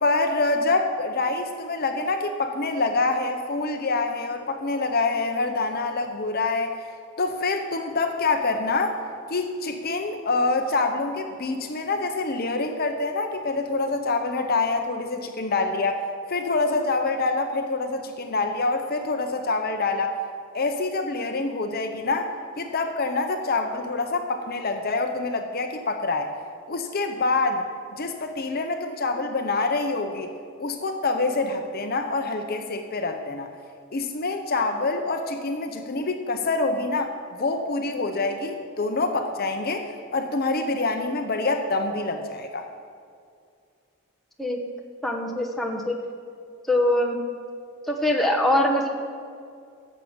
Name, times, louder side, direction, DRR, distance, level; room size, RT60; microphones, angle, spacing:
voice 1, 0.0-6.7 7.2-9.0 9.3-20.2 20.5-22.3 22.6-26.3 26.7-27.6 27.9-30.3 30.6-33.5 33.9-42.7, left 3 dB, 45° left, 5 dB, 0.7 m, -26 dB
voice 2, 45.0-46.0 46.7-47.2 47.9-48.9, left 1 dB, ahead, -1 dB, 1.0 m, -23 dB
11.0 x 7.4 x 7.2 m, 2.3 s
head